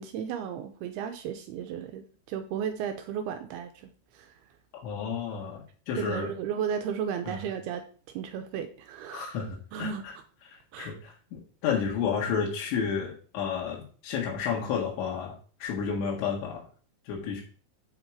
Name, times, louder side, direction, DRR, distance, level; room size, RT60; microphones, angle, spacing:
voice 1, 0.0-4.3 6.0-9.3 9.7-10.1 10.7-11.1, right 8 dB, 80° right, 7 dB, 2.4 m, -34 dB
voice 2, 4.8-6.3 7.3-7.4 9.1-10.1 10.5-16.6 17.1-17.4, left 6 dB, 80° left, -2 dB, 4.0 m, -31 dB
8.0 x 4.6 x 7.1 m, 0.41 s
omnidirectional pair, 5.2 m